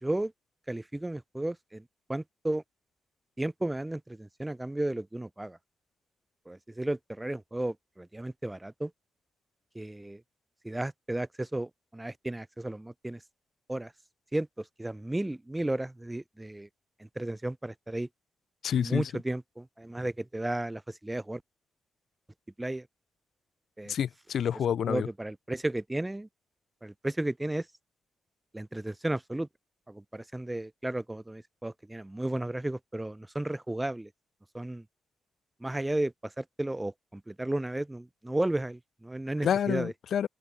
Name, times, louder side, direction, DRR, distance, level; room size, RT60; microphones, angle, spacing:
voice 1, 0.0-0.3 0.7-1.8 2.1-2.6 3.4-5.6 6.5-8.9 9.7-10.2 10.6-13.2 13.7-13.9 14.3-16.7 17.0-18.1 18.8-21.4 22.6-22.9 23.8-23.9 24.9-26.3 26.8-27.7 28.5-29.5 29.9-34.1 34.5-34.8 35.6-39.9, right 1 dB, 15° right, 2.3 m, -33 dB
voice 2, 18.6-19.1 23.9-25.1 39.4-40.3, left 8 dB, 70° left, 4.9 m, -28 dB
open air
supercardioid pair, 55°, 0 cm